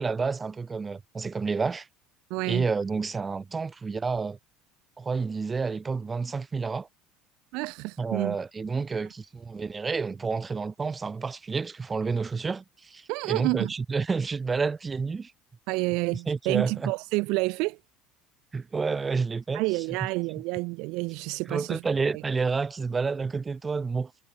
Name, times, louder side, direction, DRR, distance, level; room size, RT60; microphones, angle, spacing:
voice 1, 0.0-1.9 2.4-4.4 5.0-6.9 8.0-15.3 16.3-16.9 18.5-19.8 21.5-24.1, right 4 dB, 25° right, 4.5 m, -29 dB
voice 2, 2.3-2.7 7.5-8.4 13.1-13.7 15.7-17.8 19.5-21.8 22.1-22.2, right 25 dB, 65° right, 2.5 m, -29 dB
hypercardioid pair, 75°, 0 cm